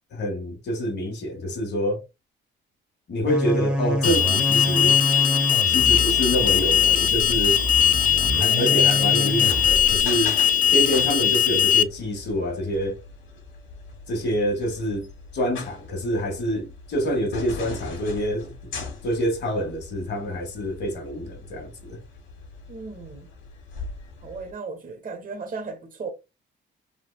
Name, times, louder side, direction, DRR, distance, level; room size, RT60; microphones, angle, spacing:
voice 1, 0.1-2.0 3.1-5.0 5.7-7.6 8.4-10.4 10.7-13.0 14.1-15.1 15.3-18.7 19.0-22.0, equal, 60° left, 1.2 m, -27 dB
sound 1, 3.3-10.0, equal, 5° right, 0.8 m, -27 dB
Alarm, 4.0-11.8, left 8 dB, 45° left, 0.4 m, -20 dB
sound 2, 7.1-24.5, left 4 dB, 75° left, 1.5 m, -41 dB
voice 2, 8.4-9.1 22.7-23.3 24.2-26.1, right 4 dB, 45° right, 1.0 m, -36 dB
3.2 x 2.6 x 2.2 m
cardioid pair, 90°, 20 cm